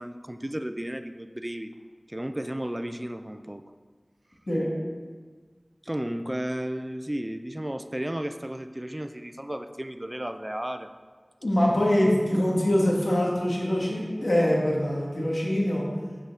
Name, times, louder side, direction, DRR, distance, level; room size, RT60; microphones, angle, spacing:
voice 1, 0.0-1.7 2.1-3.6 5.8-10.9, right 1 dB, 25° right, 8 dB, 0.5 m, -33 dB
voice 2, 11.4-15.8, left 1 dB, 85° left, -4 dB, 2.2 m, -24 dB
8.0 x 4.9 x 6.4 m, 1.5 s
wide cardioid pair, 45°, 0 cm